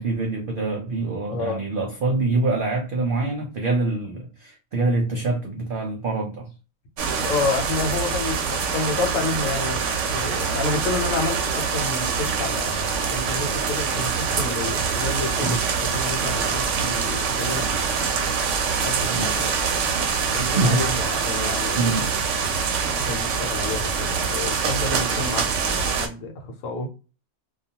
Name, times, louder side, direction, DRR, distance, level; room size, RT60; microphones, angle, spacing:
voice 1, 0.0-6.5 15.4-15.6 19.1-19.4 20.5-20.8 21.7-22.3, right 2 dB, 85° right, 0.4 m, -25 dB
voice 2, 1.3-1.6 7.2-18.4 18.6-19.5 20.3-22.0 23.0-25.5 25.9-26.9, left 3 dB, 70° left, 1.0 m, -30 dB
sound 1, 7.0-26.1, right 5 dB, 70° right, 0.9 m, -25 dB
2.3 x 2.2 x 2.7 m
omnidirectional pair, 1.5 m